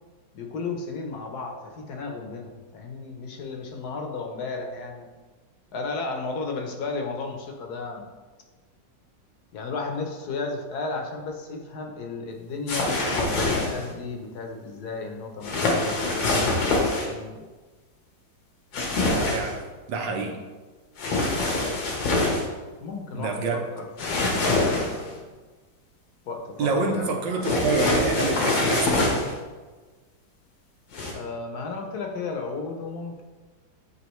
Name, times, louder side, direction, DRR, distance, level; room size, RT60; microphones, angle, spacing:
voice 1, 0.3-5.1 5.7-8.1 9.5-17.5 22.8-25.2 26.3-27.4 31.1-33.2, left 4 dB, 65° left, 3 dB, 1.2 m, -34 dB
sound 1, 12.7-13.9 15.4-17.1 18.7-19.5 21.0-22.4 24.0-25.1 27.4-29.3 30.9-31.1, left 2 dB, 85° left, 1.8 m, -24 dB
voice 2, 19.1-19.6 19.9-20.4 23.1-23.6 26.6-29.1, right 4 dB, 85° right, 2 dB, 1.5 m, -27 dB
8.4 x 3.8 x 3.1 m, 1.3 s
omnidirectional pair, 2.0 m